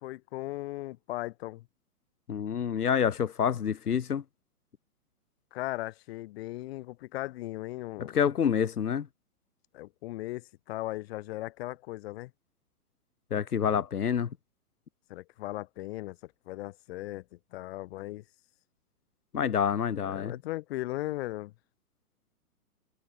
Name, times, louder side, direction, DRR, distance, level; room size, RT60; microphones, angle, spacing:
voice 1, 0.0-1.6 5.5-8.2 9.7-12.3 15.1-17.2 17.5-18.2 20.0-21.5, left 17 dB, 45° left, 1.8 m, -37 dB
voice 2, 2.3-4.2 8.0-9.1 13.3-14.3 19.3-20.4, left 8 dB, 90° left, 1.4 m, -27 dB
hypercardioid pair, 135°, 44 cm